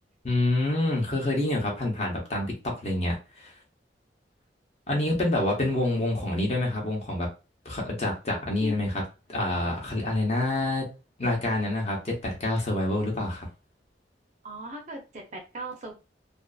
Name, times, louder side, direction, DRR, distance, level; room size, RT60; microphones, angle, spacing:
voice 1, 0.2-3.5 4.9-7.3 7.6-9.0 9.3-10.9 11.2-13.5, left 1 dB, 35° left, 0 dB, 0.8 m, -27 dB
voice 2, 14.4-15.9, right 1 dB, 40° right, 3 dB, 0.6 m, -38 dB
2.5 x 2.4 x 2.3 m, 0.30 s
head